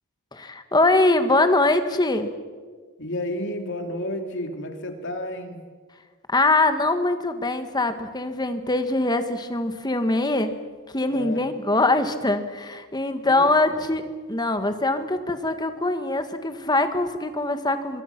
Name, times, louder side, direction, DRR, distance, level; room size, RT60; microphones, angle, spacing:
voice 1, 0.3-2.3 6.3-10.6 10.9-14.0 14.3-18.0, left 2 dB, 20° left, 8 dB, 1.5 m, -23 dB
voice 2, 3.0-5.6 11.1-11.5 13.2-13.9, left 1 dB, 55° left, 4 dB, 2.8 m, -32 dB
26.0 x 22.5 x 6.0 m, 1.5 s
head